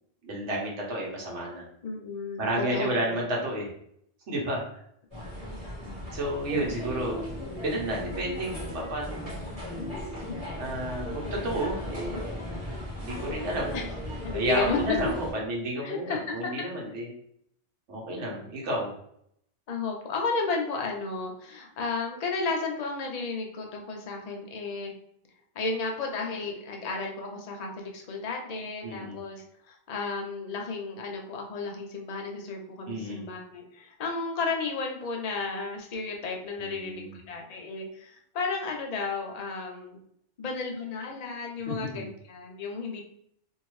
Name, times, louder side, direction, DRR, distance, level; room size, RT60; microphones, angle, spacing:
voice 1, 0.2-1.6 2.4-3.7 4.3-4.6 5.8-7.2 7.6-9.5 10.6-12.3 12.9-13.9 14.3-17.1 17.9-18.9 28.8-29.2 32.9-33.2 36.6-37.1 41.7-42.1, right 1 dB, 70° right, -3 dB, 1.3 m, -31 dB
voice 2, 1.8-3.1 5.1-5.5 13.7-13.8 14.2-15.1 15.8-16.6 19.7-24.9 25.6-40.0 40.4-43.0, left 4 dB, 50° left, 1 dB, 0.5 m, -33 dB
sound 1, 5.1-15.3, left 1 dB, 30° right, 1.2 m, -37 dB
2.7 x 2.6 x 3.1 m, 0.69 s
omnidirectional pair, 1.3 m